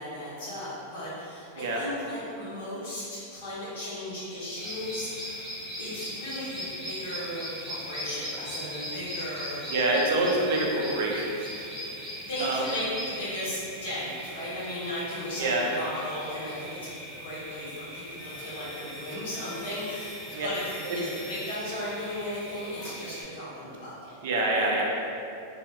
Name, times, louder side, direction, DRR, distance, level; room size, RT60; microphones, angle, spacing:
voice 1, 0.0-5.5 5.8-9.8 11.7-11.9 12.2-24.2, left 1 dB, 75° left, -8 dB, 1.2 m, -36 dB
sound 1, 4.5-23.2, equal, 5° left, 0.9 m, -40 dB
voice 2, 9.7-11.3 11.6-11.7 12.4-12.6 15.4-15.6 20.3-20.5 24.2-25.2, right 2 dB, 70° right, -2 dB, 0.5 m, -26 dB
sound 2, 18.2-21.6 22.7-23.2, left 2 dB, 40° left, 0.5 m, -47 dB
2.7 x 2.2 x 2.9 m, 2.7 s
supercardioid pair, 140°, 0 cm